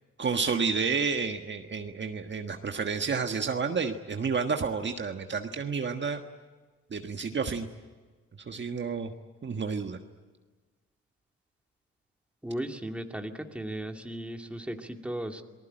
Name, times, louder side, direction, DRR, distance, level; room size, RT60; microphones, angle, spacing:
voice 1, 0.2-6.2 6.9-7.7 8.5-9.1 9.4-10.0, right 5 dB, 35° right, 5 dB, 1.5 m, -30 dB
voice 2, 12.4-15.4, right 1 dB, 5° right, 4 dB, 2.4 m, -36 dB
28.0 x 19.5 x 9.0 m, 1.4 s
cardioid pair, 90°, 30 cm